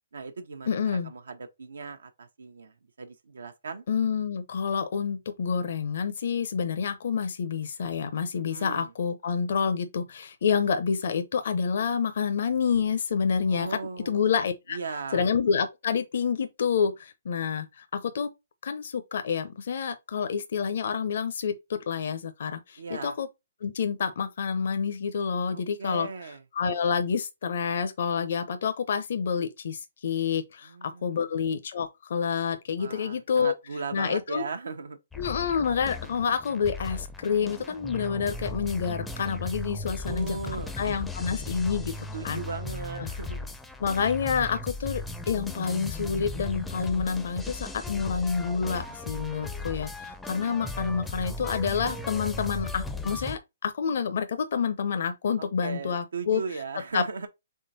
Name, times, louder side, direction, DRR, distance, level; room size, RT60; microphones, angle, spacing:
voice 1, 0.1-3.8 8.3-8.9 13.4-14.3 14.7-15.2 22.8-23.2 25.5-26.4 30.6-31.3 32.8-35.0 40.1-40.7 42.1-43.5 50.0-50.8 55.4-57.3, right 4 dB, 90° right, 0.8 m, -38 dB
voice 2, 0.7-1.1 3.9-13.8 14.1-14.8 15.1-18.3 18.6-23.3 23.6-26.1 26.6-33.5 33.9-34.4 35.2-40.4 40.8-41.9 42.2-42.4 43.0-43.1 43.8-56.4 56.9-57.0, left 6 dB, 65° left, 0.6 m, -28 dB
sound 1, 35.1-53.4, left 2 dB, 5° left, 0.4 m, -37 dB
3.7 x 3.3 x 4.0 m
hypercardioid pair, 150°, 0 cm